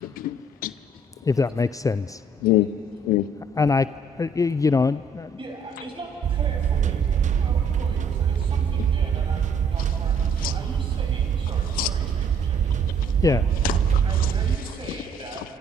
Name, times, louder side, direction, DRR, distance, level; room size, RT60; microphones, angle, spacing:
voice 1, 0.0-0.7 2.4-2.7 3.0-3.3 10.4-10.5 11.8-11.9 13.0-13.1 13.6-14.3 14.9-15.0 15.3-15.4, left 15 dB, 75° left, 16 dB, 0.5 m, -25 dB
voice 2, 1.2-2.2 3.6-3.9 4.2-5.4 13.2-13.4, left 4 dB, 25° left, 16 dB, 0.5 m, -22 dB
voice 3, 5.4-13.4 14.0-15.4, right 2 dB, 35° right, 0 dB, 7.4 m, -40 dB
sound 1, 6.2-14.6, right 8 dB, 55° right, 0.9 m, -23 dB
26.5 x 26.0 x 5.7 m, 2.8 s
hypercardioid pair, 45°, 15 cm